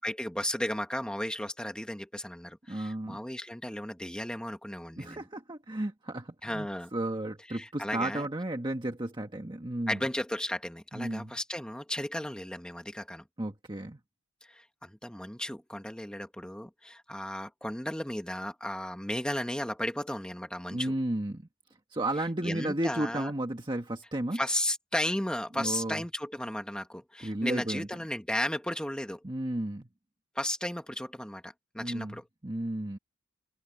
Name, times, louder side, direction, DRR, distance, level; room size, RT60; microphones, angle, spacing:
voice 1, 0.0-5.2 6.4-6.9 7.5-8.3 9.9-13.2 14.4-20.9 22.4-23.3 24.3-29.2 30.3-32.2, left 1 dB, 5° left, 1.4 m, -34 dB
voice 2, 2.7-3.2 5.0-10.0 10.9-11.4 13.4-14.0 20.7-21.4 21.9-24.4 25.6-26.0 27.2-27.9 29.2-29.9 31.8-33.0, right 1 dB, 25° right, 1.4 m, -33 dB
head